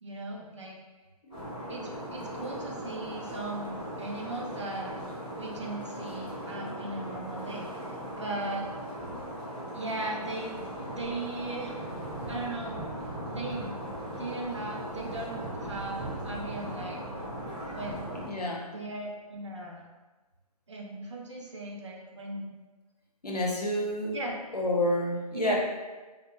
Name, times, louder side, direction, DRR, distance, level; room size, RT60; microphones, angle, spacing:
voice 1, 0.0-0.8 1.7-4.9 5.4-8.7 9.7-10.5 10.9-11.8 12.3-12.9 13.3-13.7 14.2-17.0 17.7-18.2 18.7-19.8 20.7-22.5 24.1-24.4 25.3-25.5, right 2 dB, 50° right, -1 dB, 0.5 m, -38 dB
sound 1, 1.3-18.3, equal, 10° left, 0.4 m, -38 dB
voice 2, 18.2-18.7 23.2-24.2 24.5-25.5, left 1 dB, 75° left, -3 dB, 0.7 m, -29 dB
2.5 x 2.1 x 2.5 m, 1.3 s
figure-of-eight pair, 150°, 20 cm